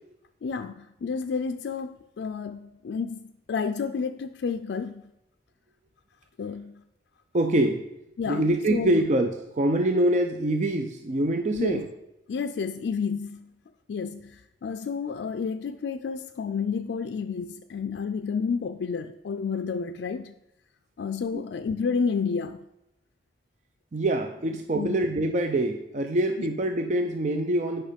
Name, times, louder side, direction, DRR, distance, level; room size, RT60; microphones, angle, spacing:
voice 1, 0.4-5.1 6.4-6.8 8.2-8.4 8.7-9.0 11.5-11.9 12.3-13.5 13.9-20.3 21.0-22.6 24.7-25.1 26.4-26.5, left 5 dB, 80° left, 8 dB, 0.4 m, -30 dB
voice 2, 7.3-7.8 8.3-11.9 21.3-21.4 23.9-27.8, right 1 dB, 40° right, 5 dB, 0.5 m, -25 dB
8.7 x 5.5 x 5.1 m, 0.86 s
head